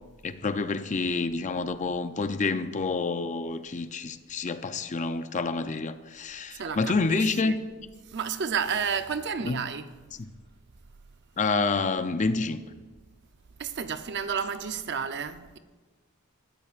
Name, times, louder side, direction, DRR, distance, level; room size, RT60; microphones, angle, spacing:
voice 1, 0.2-7.6 9.4-9.6 10.2-10.3 11.4-12.6, left 3 dB, 35° left, 0.5 m, -28 dB
voice 2, 6.6-7.6 8.1-9.9 13.6-15.6, right 6 dB, 50° right, 0.6 m, -31 dB
19.5 x 13.0 x 2.5 m
head